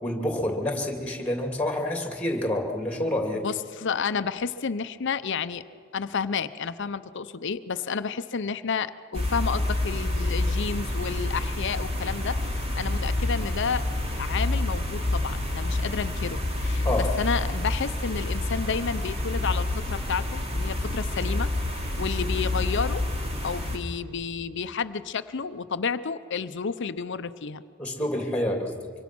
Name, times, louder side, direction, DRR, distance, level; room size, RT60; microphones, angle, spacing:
voice 1, 0.0-3.4 16.8-17.1 27.8-28.9, left 1 dB, 5° left, 3 dB, 2.7 m, -28 dB
voice 2, 3.3-5.6 5.9-13.8 14.2-21.5 22.0-23.0 23.4-27.6, left 5 dB, 60° left, 13 dB, 0.7 m, -31 dB
sound 1, 9.1-23.8, left 2 dB, 30° right, 2.7 m, -28 dB
25.0 x 24.5 x 6.1 m, 2.3 s
head